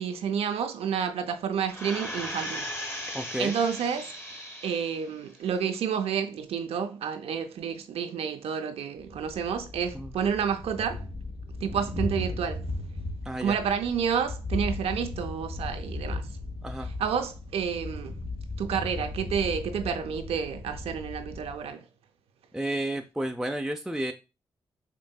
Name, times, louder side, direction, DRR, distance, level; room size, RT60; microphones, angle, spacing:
voice 1, 0.0-2.7 3.1-4.1 4.6-11.0 11.6-12.7 13.4-16.3 17.0-18.2 18.6-21.8, right 7 dB, 75° right, 0.5 m, -30 dB
sound 1, 1.7-5.1 5.5-5.6, equal, 25° left, 1.3 m, -37 dB
voice 2, 3.1-3.6 9.9-10.1 13.3-13.6 16.6-16.9 22.5-24.1, right 1 dB, 5° right, 0.5 m, -31 dB
Thunder, 9.0-21.7, left 2 dB, 55° left, 1.1 m, -36 dB
5.2 x 2.6 x 2.3 m
supercardioid pair, 45°, 10 cm